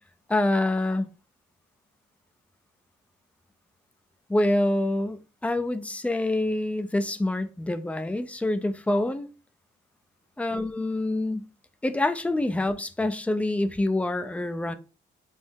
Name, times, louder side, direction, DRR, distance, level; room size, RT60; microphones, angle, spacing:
voice 1, 0.3-1.1 4.3-9.3 10.4-11.5 11.8-14.7, left 1 dB, 5° left, 0.5 m, -26 dB
5.3 x 2.0 x 3.6 m
cardioid pair, 90°, 20 cm